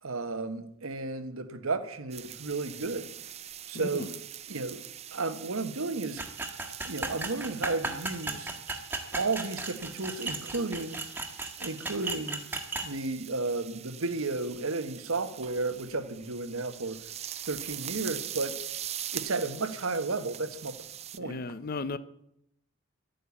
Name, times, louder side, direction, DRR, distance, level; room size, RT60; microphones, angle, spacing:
voice 1, 0.0-3.1 3.7-4.1 4.5-4.8 5.1-6.2 6.8-8.6 9.1-11.0 11.6-12.4 12.8-17.0 17.4-18.6 19.1-20.8 21.2-21.4, right 3 dB, 85° right, 1.4 m, -33 dB
sound 1, 2.1-21.2, right 11 dB, 30° right, 0.5 m, -43 dB
voice 2, 3.7-4.1 8.3-8.4 21.2-22.0, left 3 dB, 45° left, 0.6 m, -36 dB
sound 2, 6.2-12.9, right 2 dB, 10° right, 1.5 m, -36 dB
12.0 x 9.3 x 8.4 m
head